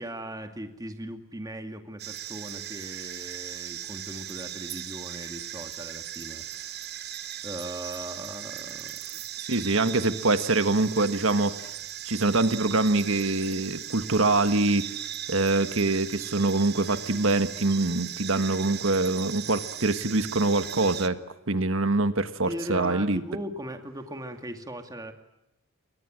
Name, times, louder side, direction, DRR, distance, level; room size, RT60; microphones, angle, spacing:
voice 1, 0.0-6.9 7.4-9.2 9.6-9.7 22.5-25.1, right 1 dB, 15° right, 6 dB, 2.2 m, -39 dB
sound 1, 2.0-21.1, right 11 dB, 50° right, 1.2 m, -38 dB
voice 2, 9.4-11.7 12.1-14.9 15.3-21.2 21.5-23.2, right 2 dB, 65° right, 10 dB, 1.5 m, -24 dB
29.0 x 23.0 x 7.7 m, 0.88 s
head